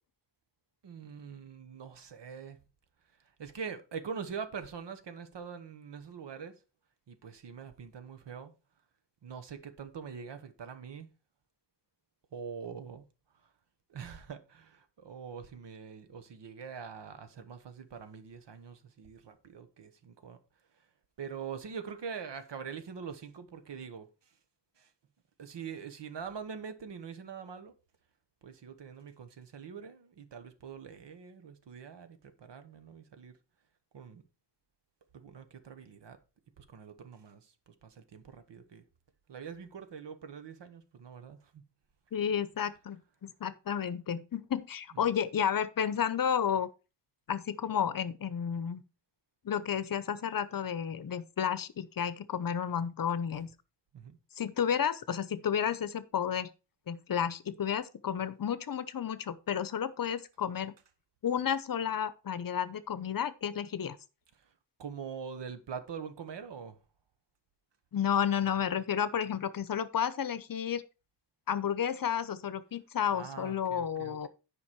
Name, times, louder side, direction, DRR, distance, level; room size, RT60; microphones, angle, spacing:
voice 1, 0.8-2.6 3.2-6.5 7.1-8.5 9.2-11.1 12.3-13.1 13.3-13.5 13.9-20.4 20.8-20.9 21.2-24.3 24.8-24.9 25.4-27.7 28.4-33.4 33.9-34.2 35.1-36.2 36.6-38.8 39.3-41.7 44.9-45.1 53.9-54.2 64.3-64.5 64.8-66.8 73.1-74.3, right 6 dB, 85° right, 1.3 m, -44 dB
voice 2, 42.1-46.7 47.3-48.8 49.4-53.5 54.4-56.5 56.9-60.7 61.2-64.0 67.9-70.8 71.5-74.3, left 8 dB, 55° left, 0.7 m, -32 dB
10.0 x 5.2 x 4.6 m
wide cardioid pair, 160°, 41 cm